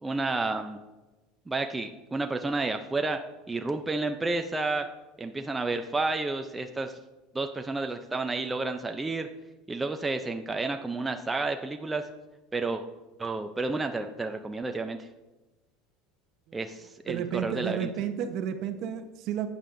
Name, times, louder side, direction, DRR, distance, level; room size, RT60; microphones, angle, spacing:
voice 1, 0.0-0.8 1.5-3.2 3.5-4.9 5.2-7.0 7.3-9.3 9.7-12.0 12.5-12.8 13.2-15.1 16.5-17.9, right 3 dB, 10° right, 5 dB, 0.4 m, -31 dB
voice 2, 17.1-19.5, right 9 dB, 55° right, 8 dB, 0.9 m, -32 dB
12.0 x 8.4 x 2.6 m, 1.1 s
supercardioid pair, 140°, 0 cm